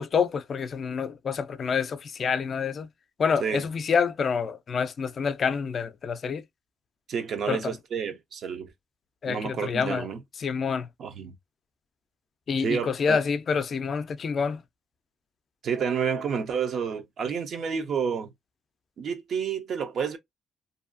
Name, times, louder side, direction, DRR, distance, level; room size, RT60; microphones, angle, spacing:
voice 1, 0.0-2.9 3.2-6.4 7.5-7.7 9.2-10.1 10.4-10.9 12.5-14.6, left 6 dB, 50° left, 0.4 m, -27 dB
voice 2, 7.1-8.7 9.3-10.2 11.0-11.3 12.6-13.2 15.6-18.3 19.0-20.2, right 6 dB, 65° right, 0.6 m, -29 dB
2.6 x 2.3 x 2.5 m
cardioid pair, 90°, 0 cm